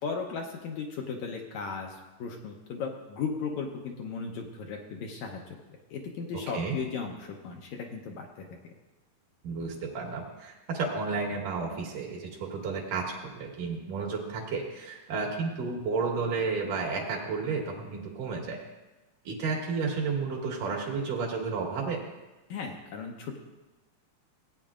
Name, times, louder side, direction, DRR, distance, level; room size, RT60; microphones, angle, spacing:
voice 1, 0.0-5.4 5.9-8.3 8.6-8.7 22.5-23.4, left 5 dB, 70° left, 1 dB, 1.9 m, -36 dB
voice 2, 9.4-18.6 19.3-22.0, right 4 dB, 70° right, 0 dB, 3.2 m, -32 dB
17.5 x 9.1 x 2.5 m, 1.1 s
omnidirectional pair, 3.9 m